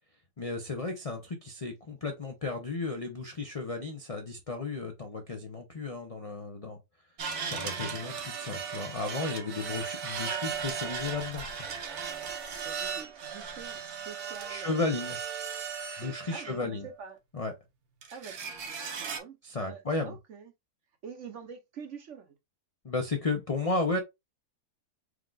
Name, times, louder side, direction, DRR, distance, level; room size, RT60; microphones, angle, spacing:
voice 1, 0.4-6.8 7.5-11.5 14.5-15.2 16.0-16.8 17.3-17.5 19.4-20.1 22.8-24.0, left 3 dB, 45° left, 0.4 m, -33 dB
sound 1, 7.2-16.8 18.0-19.2, right 6 dB, 75° right, 1.4 m, -37 dB
voice 2, 12.6-15.2 16.0-17.2 18.1-20.5 21.0-22.4, right 6 dB, 60° right, 1.0 m, -46 dB
4.6 x 2.3 x 3.8 m
omnidirectional pair, 1.6 m